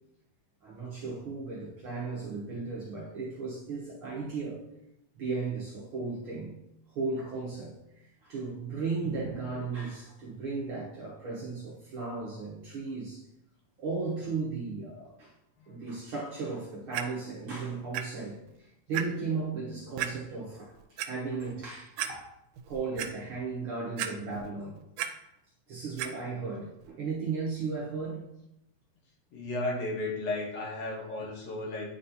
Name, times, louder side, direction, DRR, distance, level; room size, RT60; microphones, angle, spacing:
voice 1, 0.6-4.6 5.1-6.6 6.9-13.2 13.8-15.3 15.7-20.7 21.0-22.2 22.7-24.8 25.7-28.3, right 4 dB, 60° right, -5 dB, 1.5 m, -35 dB
Clock, 16.9-17.0 17.9-18.0 18.5-18.6 18.9-19.0 20.0-20.1 20.8-21.1 21.6-21.7 22.0-22.1 22.6-23.1 24.0-24.5 24.8-25.1 26.0-26.1 26.8-26.9, right 11 dB, 85° right, 2.0 m, -33 dB
voice 2, 29.3-31.9, left 2 dB, 65° left, -2 dB, 2.2 m, -34 dB
9.3 x 4.2 x 2.7 m, 0.85 s
omnidirectional pair, 3.3 m